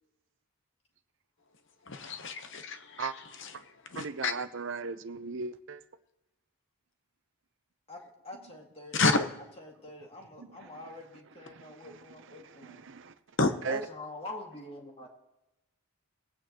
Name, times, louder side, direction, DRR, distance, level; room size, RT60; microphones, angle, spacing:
voice 1, 1.9-3.1 3.9-4.3 8.9-9.3 13.4-13.5, left 3 dB, 55° left, 9 dB, 1.0 m, -28 dB
voice 2, 3.9-5.8 10.4-10.7 11.5-13.1 13.6-13.8, right 4 dB, 55° right, 11 dB, 0.7 m, -38 dB
voice 3, 7.9-9.0 9.6-12.9 13.6-15.1, left 2 dB, 25° left, 0 dB, 2.1 m, -45 dB
21.5 x 9.0 x 3.0 m, 0.98 s
head